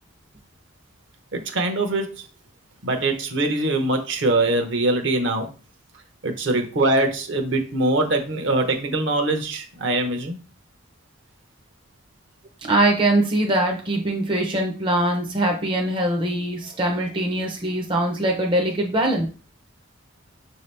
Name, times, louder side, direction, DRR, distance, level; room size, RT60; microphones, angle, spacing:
voice 1, 1.3-2.2 2.8-5.5 6.2-10.4, right 2 dB, 60° right, 5 dB, 0.7 m, -23 dB
voice 2, 12.6-19.3, right 1 dB, 25° right, 1 dB, 0.5 m, -22 dB
5.9 x 2.8 x 3.3 m, 0.37 s
head